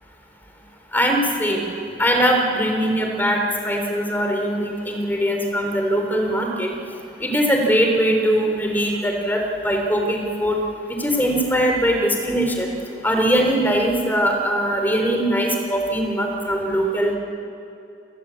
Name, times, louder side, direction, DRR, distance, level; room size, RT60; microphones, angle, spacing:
voice 1, 0.9-1.7 2.0-6.7 7.2-10.6 10.9-12.7 13.0-17.1, equal, 10° left, 2 dB, 3.7 m, -21 dB
28.5 x 19.0 x 8.4 m, 2.7 s
head